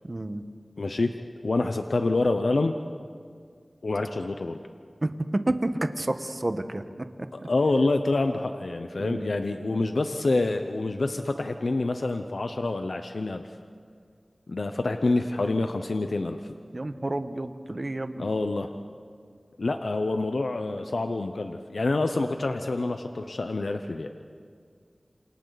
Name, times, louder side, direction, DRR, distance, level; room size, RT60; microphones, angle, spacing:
voice 1, 0.0-0.4 5.0-5.1 5.5-7.1 7.4-7.5 9.0-9.3 16.7-18.3, right 1 dB, 45° right, 8 dB, 1.3 m, -30 dB
voice 2, 0.8-1.1 1.4-2.7 3.8-4.6 7.3-13.5 14.5-16.4 18.2-18.7 19.6-24.1, left 2 dB, 90° left, 6 dB, 0.8 m, -27 dB
28.5 x 27.5 x 4.1 m, 2.1 s
wide cardioid pair, 60°, 0 cm